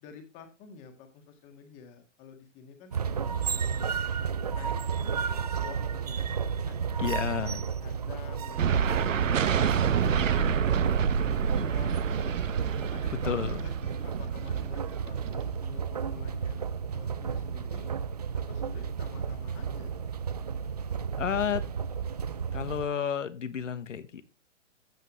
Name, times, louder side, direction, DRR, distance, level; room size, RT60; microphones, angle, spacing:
voice 1, 0.0-3.9 4.5-5.8 6.1-6.3 6.6-6.8 7.1-10.8 11.2-12.4 12.8-16.6 16.9-17.9 18.3-19.9, left 6 dB, 20° left, 6 dB, 1.6 m, -49 dB
Squeaky Escalator, 2.9-22.8, right 6 dB, 35° right, 0.4 m, -33 dB
voice 2, 7.0-7.6 13.2-13.6 21.2-21.6 22.5-24.4, left 8 dB, 75° left, 13 dB, 1.3 m, -31 dB
sound 1, 8.6-15.6, right 7 dB, 85° right, 1.0 m, -28 dB
14.5 x 5.6 x 3.1 m, 0.29 s
hypercardioid pair, 160°, 38 cm